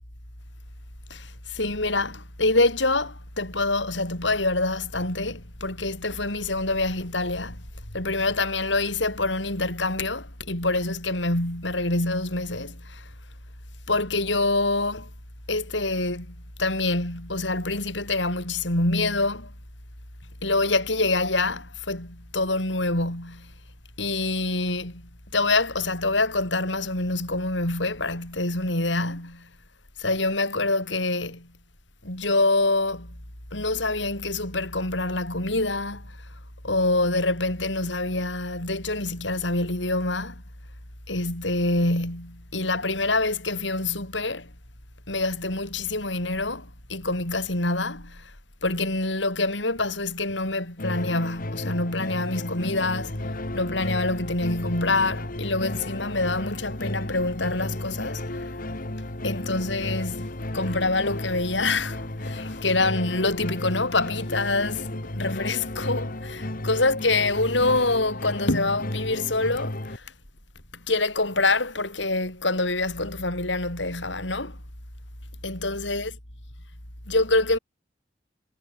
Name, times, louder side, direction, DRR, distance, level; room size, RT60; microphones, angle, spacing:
voice 1, 1.1-7.6 7.9-13.1 13.9-15.1 15.5-19.5 20.4-23.5 24.0-25.0 25.3-29.5 30.0-31.5 32.0-33.1 33.5-36.1 36.6-40.4 41.1-44.5 45.1-48.3 48.6-53.2 53.5-58.5 59.2-70.0 70.9-74.6 75.4-76.1 77.1-77.6, left 2 dB, 70° left, 7.9 m, -26 dB
sound 1, 50.8-70.0, left 1 dB, 50° left, 2.3 m, -33 dB
head